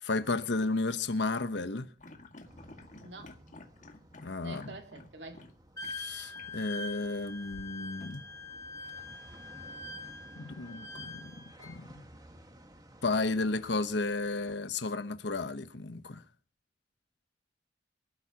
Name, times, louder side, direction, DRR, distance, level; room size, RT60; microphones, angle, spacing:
voice 1, 0.0-1.9 4.2-4.6 5.8-8.2 10.4-12.0 13.0-16.2, left 3 dB, 75° left, 1.0 m, -33 dB
sound 1, 2.0-5.5 5.8-5.9 6.3-6.5 7.5-8.6, left 2 dB, 45° left, 2.0 m, -52 dB
sound 2, 2.4-14.5, right 1 dB, 20° right, 1.7 m, -56 dB
voice 2, 3.0-3.4 4.4-5.5, right 3 dB, 75° right, 2.0 m, -47 dB
Wind instrument woodwind instrument, 5.8-11.8, left 2 dB, 20° left, 1.3 m, -44 dB
24.5 x 13.0 x 2.9 m
head